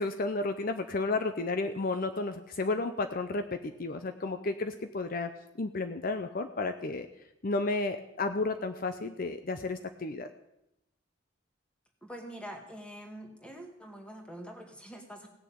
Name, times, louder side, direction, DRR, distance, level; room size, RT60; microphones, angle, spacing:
voice 1, 0.0-5.3 5.6-7.1 7.4-10.3, left 3 dB, 50° left, 8 dB, 0.7 m, -32 dB
voice 2, 12.0-15.3, equal, 5° left, 2 dB, 2.1 m, -45 dB
17.0 x 7.0 x 8.7 m, 0.87 s
head